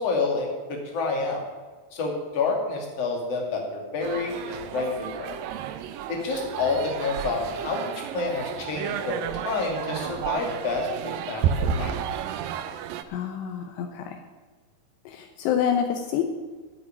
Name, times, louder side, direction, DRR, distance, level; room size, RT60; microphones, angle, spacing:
voice 1, 0.0-1.4 1.9-5.4 6.1-12.0, left 3 dB, 40° left, 1 dB, 3.0 m, -29 dB
sound 1, 4.0-13.0, right 8 dB, 90° right, 2.0 m, -31 dB
voice 2, 13.1-14.2 15.1-16.2, left 8 dB, 80° left, 5 dB, 2.9 m, -27 dB
11.0 x 8.1 x 9.8 m, 1.4 s
omnidirectional pair, 5.1 m